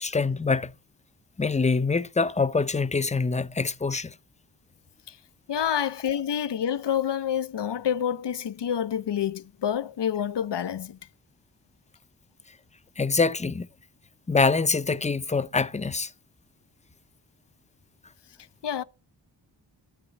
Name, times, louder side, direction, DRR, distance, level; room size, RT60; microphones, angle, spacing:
voice 1, 0.0-0.7 1.4-4.1 13.0-13.7 14.3-16.1, left 4 dB, 15° left, 0.5 m, -25 dB
voice 2, 5.5-11.0 18.6-18.8, left 9 dB, 70° left, 0.7 m, -28 dB
8.9 x 6.9 x 8.2 m
wide cardioid pair, 90°, 43 cm